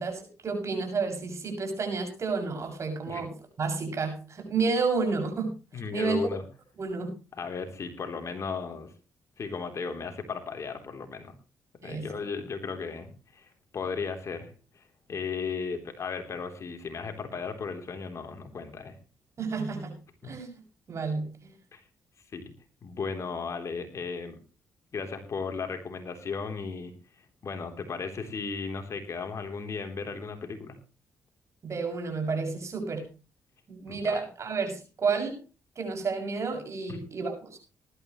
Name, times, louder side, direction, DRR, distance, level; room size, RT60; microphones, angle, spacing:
voice 1, 0.0-3.3 3.6-5.5 5.9-6.2 6.8-7.2 11.8-12.1 19.4-19.9 20.2-20.5 20.9-21.5 31.6-33.1 33.7-35.4 35.8-37.6, right 4 dB, 50° right, 4 dB, 7.0 m, -30 dB
voice 2, 5.7-6.4 7.3-8.9 9.4-11.4 11.8-14.8 15.1-18.9 20.2-20.3 21.7-21.8 22.3-22.5 22.8-24.4 24.9-26.9 27.4-30.8 33.9-34.2 36.9-37.0, left 5 dB, 50° left, 6 dB, 3.5 m, -35 dB
19.5 x 12.5 x 3.2 m, 0.32 s
cardioid pair, 75°, 6 cm